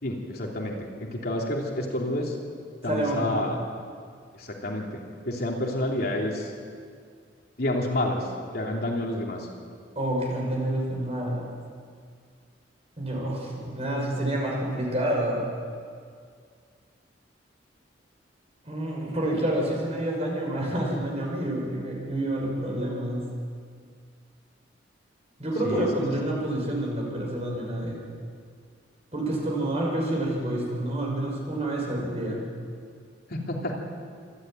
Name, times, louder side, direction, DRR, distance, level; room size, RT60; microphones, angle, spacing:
voice 1, 0.0-2.3 2.8-3.6 4.4-6.5 7.6-8.3 8.5-9.5 25.6-25.9 33.3-33.7, left 1 dB, 55° left, -1 dB, 3.0 m, -29 dB
voice 2, 2.8-3.3 10.0-11.5 13.0-15.5 18.6-23.2 25.4-28.0 29.1-32.4, right 1 dB, 35° right, -1 dB, 5.7 m, -28 dB
26.0 x 12.0 x 9.2 m, 2.1 s
head